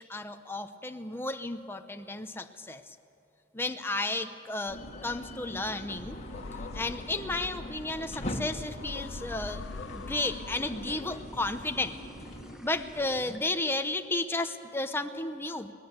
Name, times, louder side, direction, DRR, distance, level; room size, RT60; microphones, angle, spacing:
voice 1, 0.0-3.0 3.5-6.2 6.7-9.6 9.9-12.0 12.6-15.7, left 2 dB, 10° left, 7 dB, 0.9 m, -33 dB
sound 1, 4.7-12.6, left 1 dB, 35° left, 1.8 m, -41 dB
sound 2, 6.1-11.4, left 4 dB, 80° left, 0.6 m, -44 dB
sound 3, 7.2-13.5, equal, 5° right, 1.6 m, -52 dB
22.5 x 19.5 x 8.2 m, 2.6 s
head